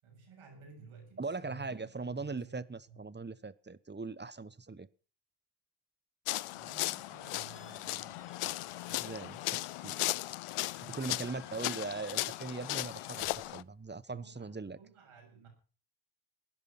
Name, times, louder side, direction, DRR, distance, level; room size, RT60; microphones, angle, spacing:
voice 1, 0.0-2.5 2.9-3.0 6.5-8.4 11.2-11.5 14.1-15.5, right 4 dB, 85° right, 7.6 m, -54 dB
voice 2, 1.2-4.9 8.9-10.0 10.8-14.8, right 4 dB, 20° right, 1.1 m, -40 dB
sound 1, 6.3-13.6, left 16 dB, 80° left, 0.6 m, -37 dB
Squeak, 6.6-14.0, left 5 dB, 55° left, 4.1 m, -60 dB
17.5 x 10.5 x 5.9 m
cardioid pair, 55°, 49 cm